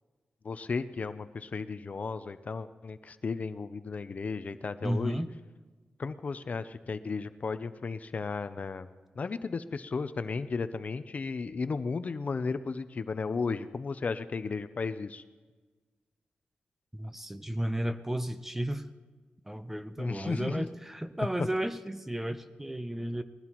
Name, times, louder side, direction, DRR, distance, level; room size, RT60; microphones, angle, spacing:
voice 1, 0.4-5.2 6.0-8.9 9.2-15.2 20.0-20.7, left 4 dB, 45° left, 12 dB, 0.5 m, -34 dB
voice 2, 4.8-5.4 16.9-18.9 19.5-23.2, right 1 dB, 10° right, 10 dB, 0.6 m, -33 dB
20.5 x 15.0 x 3.0 m, 1.4 s
wide cardioid pair, 120°, 4 cm